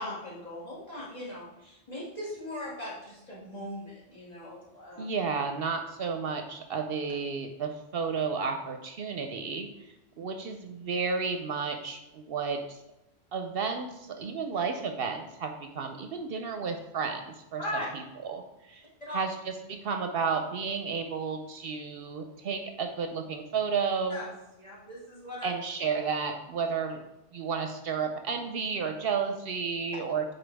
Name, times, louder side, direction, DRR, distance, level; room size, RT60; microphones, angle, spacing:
voice 1, 0.0-5.0 10.2-10.3 17.6-17.9 19.0-19.2 24.1-24.3 24.6-25.5, left 1 dB, 35° left, -8 dB, 2.4 m, -39 dB
voice 2, 5.0-9.7 10.2-12.8 13.3-17.6 18.2-18.4 18.7-18.8 19.1-24.2 25.4-27.0 27.3-30.2, right 5 dB, 65° right, 5 dB, 0.8 m, -32 dB
9.0 x 4.1 x 3.4 m, 0.93 s
omnidirectional pair, 1.1 m